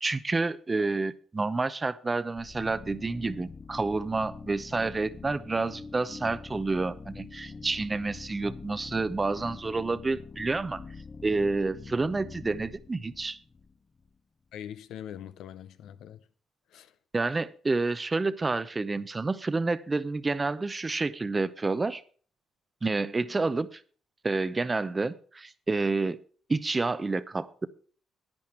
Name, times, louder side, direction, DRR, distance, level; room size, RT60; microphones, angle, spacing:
voice 1, 0.0-10.8 11.2-13.4 17.1-22.0 22.8-23.8 24.2-26.2 26.5-27.7, right 3 dB, 25° right, 0.7 m, -29 dB
sound 1, 2.4-14.1, left 4 dB, 25° left, 0.8 m, -45 dB
voice 2, 14.5-16.2 16.7-16.9, left 10 dB, 75° left, 0.7 m, -42 dB
10.5 x 9.4 x 4.4 m
supercardioid pair, 70°, 0 cm